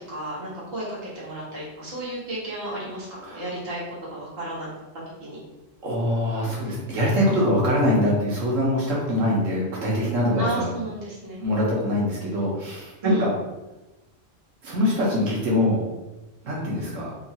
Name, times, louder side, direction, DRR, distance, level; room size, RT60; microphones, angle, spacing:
voice 1, 0.0-4.7 5.2-5.4 10.4-11.4 13.0-13.3, right 2 dB, 50° right, -7 dB, 1.2 m, -32 dB
voice 2, 5.8-10.7 11.4-13.3 14.6-15.8 16.4-17.1, left 1 dB, 85° right, -5 dB, 1.1 m, -23 dB
2.9 x 2.2 x 2.7 m, 1.0 s
omnidirectional pair, 1.3 m